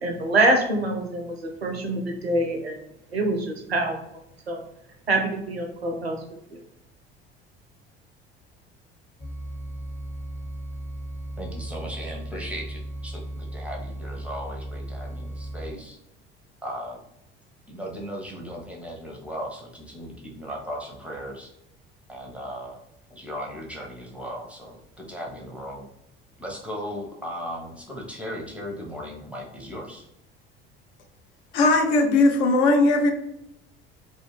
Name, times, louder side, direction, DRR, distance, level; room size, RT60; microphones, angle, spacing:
voice 1, 0.0-1.3 1.6-2.8 3.1-4.0 4.5-4.6 5.1-6.2, right 2 dB, 90° right, 2 dB, 0.5 m, -24 dB
sound 1, 9.2-15.7, right 1 dB, 25° left, 1.0 m, -36 dB
voice 2, 11.4-16.0 16.6-17.0 17.7-21.5 22.1-22.8 23.1-25.9 26.4-30.1, equal, 5° right, -2 dB, 0.6 m, -37 dB
voice 3, 31.5-33.1, left 2 dB, 60° left, 5 dB, 0.6 m, -18 dB
2.4 x 2.1 x 3.1 m, 0.82 s
figure-of-eight pair, 60°, 30 cm